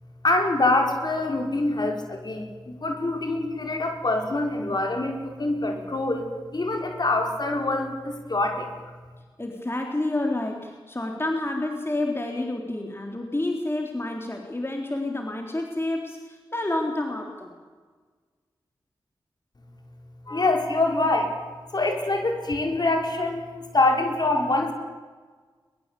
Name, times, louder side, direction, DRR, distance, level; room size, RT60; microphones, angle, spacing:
voice 1, 0.2-6.3 6.5-8.7 20.3-21.3 21.7-24.7, left 2 dB, 50° left, 3 dB, 5.3 m, -25 dB
voice 2, 9.4-17.5, left 2 dB, 25° left, 2 dB, 3.8 m, -29 dB
22.0 x 22.0 x 8.5 m, 1.5 s
cardioid pair, 45°, 9 cm